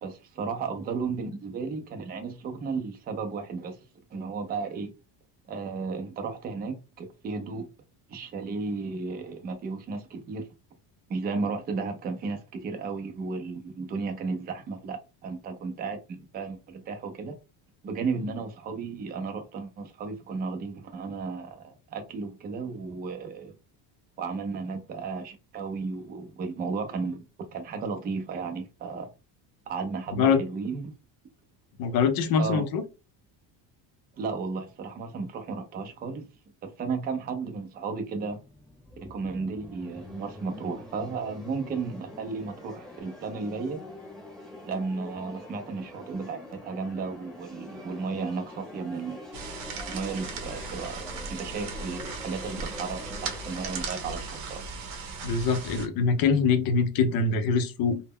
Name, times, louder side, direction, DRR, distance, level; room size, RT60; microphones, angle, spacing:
voice 1, 0.0-3.8 4.1-4.9 5.5-7.7 8.1-10.5 11.1-17.4 17.8-23.5 24.2-27.2 27.5-29.1 29.7-30.9 32.4-32.6 34.2-36.2 36.6-38.4 39.0-43.8 44.7-49.3 49.9-54.7, right 4 dB, 25° right, 0.4 m, -34 dB
voice 2, 31.8-32.8 55.2-58.0, left 5 dB, 55° left, 0.6 m, -24 dB
sound 1, 38.0-55.7, left 1 dB, ahead, 0.7 m, -45 dB
sound 2, 49.3-55.9, right 4 dB, 50° right, 0.7 m, -37 dB
2.1 x 2.0 x 3.5 m
cardioid pair, 140°, 44 cm